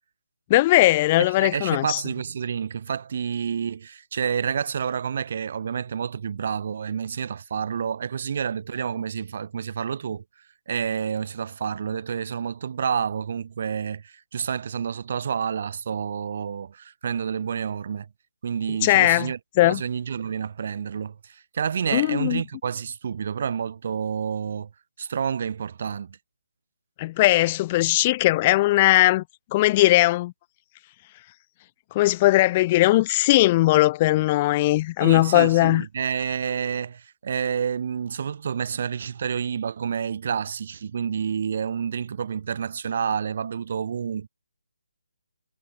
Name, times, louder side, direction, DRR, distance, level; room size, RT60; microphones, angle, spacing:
voice 1, 0.5-2.0 18.8-19.3 19.6-19.8 21.9-22.4 27.0-29.2 29.5-30.3 31.9-35.8, left 17 dB, 25° left, 0.7 m, -19 dB
voice 2, 1.4-10.2 10.7-18.1 18.4-24.7 25.0-26.2 35.0-44.3, right 7 dB, 50° right, 2.4 m, -29 dB
figure-of-eight pair, 150°, 0 cm